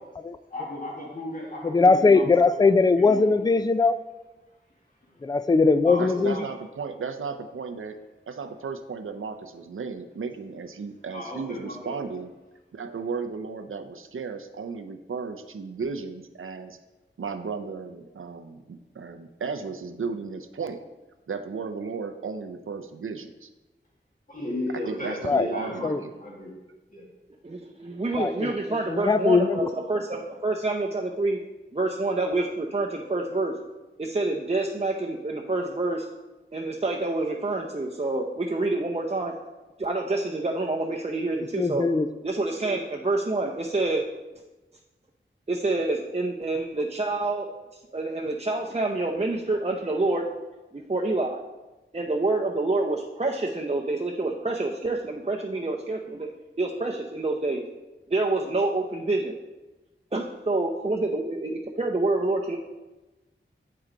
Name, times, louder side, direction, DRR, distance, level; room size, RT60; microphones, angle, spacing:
voice 1, 0.5-3.5 5.8-6.4 11.1-12.0 24.3-26.5 26.9-27.0, left 1 dB, 40° left, -3 dB, 1.4 m, -35 dB
voice 2, 1.6-4.0 5.2-6.5 25.2-25.5 25.8-26.0 28.1-28.5 28.9-29.7 41.6-42.1, left 4 dB, 20° left, 13 dB, 0.3 m, -20 dB
voice 3, 6.0-8.0 8.3-12.3 12.7-16.8 17.2-20.8 21.3-23.5 24.7-26.1, right 5 dB, 85° right, 8 dB, 0.5 m, -35 dB
voice 4, 27.4-31.4 31.7-33.5 34.0-36.1 36.5-39.3 39.8-41.9 42.2-44.1 45.5-47.5 47.7-50.3 50.7-51.4 51.9-56.3 56.6-57.6 58.1-59.4 60.1-62.6, right 2 dB, 30° right, 0 dB, 0.6 m, -27 dB
7.7 x 4.7 x 3.8 m, 1.1 s
wide cardioid pair, 40°, 20 cm